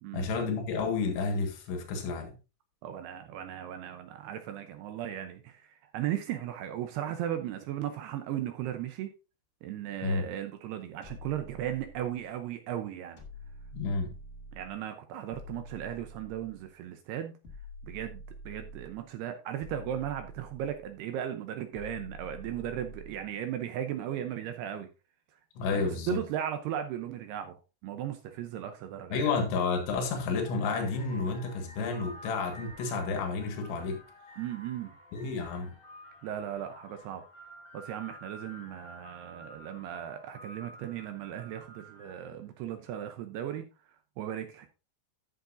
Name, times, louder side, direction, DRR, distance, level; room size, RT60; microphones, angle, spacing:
voice 1, 0.1-2.4 10.0-10.3 13.7-14.1 25.6-26.2 29.1-34.0 35.1-35.7, left 4 dB, 90° left, 4.0 m, -31 dB
voice 2, 2.8-9.1 9.6-13.2 14.5-17.3 17.8-18.2 18.5-24.9 25.7-27.6 27.8-29.3 34.4-34.9 36.2-37.2 37.7-43.7 44.2-44.7, right 11 dB, 75° right, 2.6 m, -36 dB
sound 1, 11.0-12.3 13.2-14.8 15.3-16.7 17.4-19.1 19.6-21.0 21.7-23.3, equal, 70° left, 0.6 m, -47 dB
Location Ice Cream Van, 29.7-29.9 30.3-42.4, equal, 25° left, 4.1 m, -51 dB
14.5 x 6.6 x 2.6 m
omnidirectional pair, 5.2 m